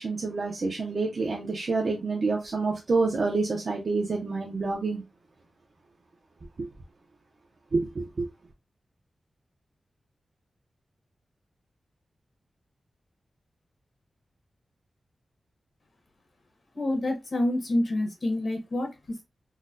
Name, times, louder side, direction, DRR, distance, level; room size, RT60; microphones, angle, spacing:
voice 1, 0.0-5.0 6.6-6.7 7.7-8.3, right 3 dB, 50° right, 0.6 m, -28 dB
voice 2, 16.7-19.2, left 1 dB, 45° left, 1.1 m, -28 dB
3.9 x 2.2 x 2.5 m
wide cardioid pair, 160°, 0 cm